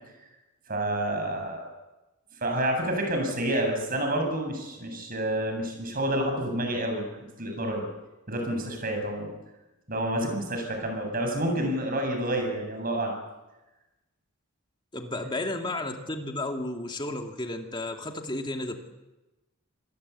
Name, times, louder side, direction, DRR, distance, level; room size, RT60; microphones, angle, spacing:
voice 1, 0.7-1.7 2.4-7.1 7.4-7.9 8.3-9.3 9.9-13.1, right 1 dB, 40° right, 3 dB, 7.6 m, -29 dB
voice 2, 14.9-18.8, left 2 dB, 20° left, 4 dB, 2.5 m, -33 dB
26.5 x 20.0 x 8.5 m, 1.0 s
head